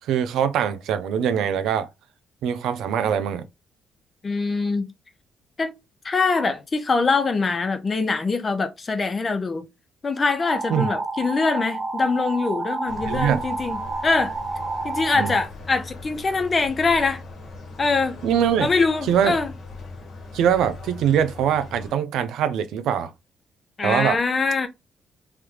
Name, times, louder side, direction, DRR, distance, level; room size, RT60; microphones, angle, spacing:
voice 1, 0.0-1.9 2.4-3.5 10.7-10.9 13.1-13.4 15.1-15.3 18.2-18.7 19.1-19.4 20.3-23.1 23.8-24.2, right 9 dB, 85° right, 0.5 m, -22 dB
voice 2, 4.2-4.9 5.6-5.7 6.0-9.7 10.0-14.3 14.8-17.2 17.8-18.2 18.6-19.5 23.8-24.7, left 4 dB, 35° left, 0.7 m, -23 dB
sound 1, 10.4-15.4, right 3 dB, 40° right, 1.0 m, -30 dB
sound 2, 12.9-21.9, left 3 dB, 55° left, 1.2 m, -39 dB
3.3 x 2.3 x 3.0 m
cardioid pair, 90°, 0 cm